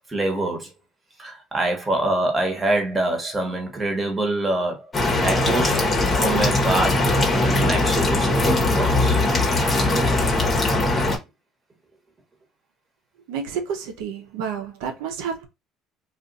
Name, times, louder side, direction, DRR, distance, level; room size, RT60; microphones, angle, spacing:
voice 1, 0.1-0.7 1.2-4.9 5.2-7.1 7.4-9.2, right 2 dB, 15° right, 1.2 m, -25 dB
sound 1, 4.9-11.2, left 2 dB, 25° left, 1.1 m, -20 dB
voice 2, 13.3-15.5, right 6 dB, 90° right, 0.7 m, -30 dB
2.5 x 2.5 x 3.9 m
cardioid pair, 110°, 0 cm